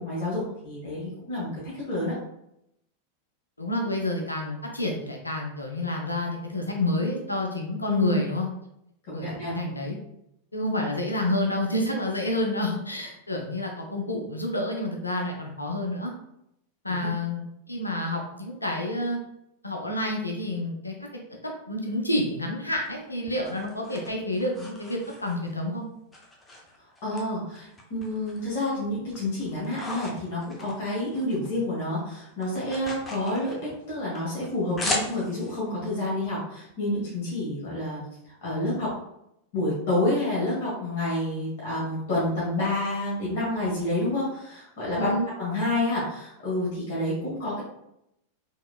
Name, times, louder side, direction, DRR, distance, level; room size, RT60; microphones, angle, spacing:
voice 1, 0.0-2.1 7.8-8.2 9.1-9.5 16.9-17.1 27.0-33.5 33.9-38.9 39.5-47.6, left 1 dB, 55° left, -7 dB, 1.5 m, -29 dB
voice 2, 3.6-8.5 9.1-10.0 10.5-16.1 16.8-19.2 19.6-20.9 21.7-25.8 44.9-45.3, left 1 dB, 85° left, 1 dB, 0.5 m, -29 dB
sound 1, 22.8-25.6 26.1-27.2 27.5-28.6 28.9-31.5 31.8-35.6, left 2 dB, 15° left, 0.7 m, -37 dB
3.7 x 3.0 x 2.2 m, 0.80 s
figure-of-eight pair, 90°, 0 cm